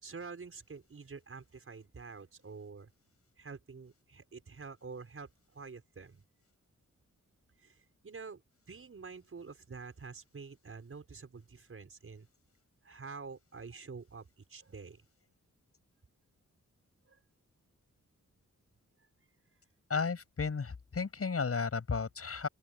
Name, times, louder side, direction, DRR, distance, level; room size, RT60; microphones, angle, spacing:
voice 1, 0.0-2.9 3.4-6.2 7.6-8.4 8.7-12.3 12.8-15.1 17.0-17.2, right 4 dB, 45° right, 6.2 m, -48 dB
voice 2, 19.9-22.5, left 5 dB, 50° left, 7.8 m, -33 dB
open air
wide cardioid pair, 115°, 30 cm